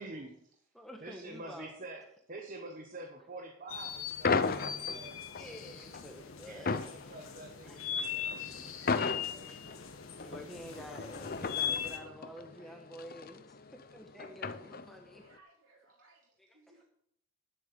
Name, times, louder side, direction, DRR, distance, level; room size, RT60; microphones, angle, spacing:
voice 1, 0.0-0.5 1.0-5.2 6.4-9.6 10.1-11.1 14.6-14.7, right 2 dB, 40° right, 3 dB, 1.1 m, -48 dB
voice 2, 0.7-1.7 5.4-6.8 7.7-7.8 8.9-9.8 10.2-13.6 13.9-15.2 16.4-16.9, equal, ahead, 3 dB, 1.2 m, -49 dB
sound 1, 3.7-12.0, left 8 dB, 70° left, 1.4 m, -40 dB
sound 2, 4.2-15.2, left 4 dB, 40° left, 0.6 m, -36 dB
voice 3, 4.5-5.5 6.5-6.9 8.0-8.2 11.7-11.8 12.6-12.7 14.0-14.3 15.2-16.9, right 2 dB, 65° right, 0 dB, 3.7 m, -65 dB
10.5 x 8.3 x 6.8 m, 0.71 s
head